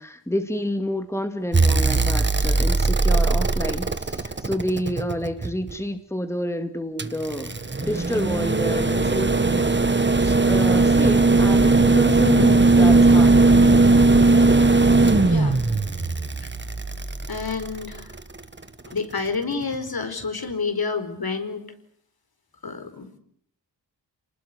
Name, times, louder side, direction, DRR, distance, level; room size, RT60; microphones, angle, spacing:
voice 1, 0.0-7.5 7.8-13.8, equal, 5° left, 7 dB, 2.4 m, -29 dB
sound 1, 1.5-5.7 7.0-18.2 19.7-19.8, right 3 dB, 25° right, 1.7 m, -18 dB
voice 2, 15.2-15.6 16.4-16.5 17.3-18.1 18.9-21.7 22.6-23.2, left 4 dB, 55° left, 8 dB, 4.7 m, -29 dB
29.0 x 20.0 x 9.9 m, 0.65 s
wide cardioid pair, 100°, 44 cm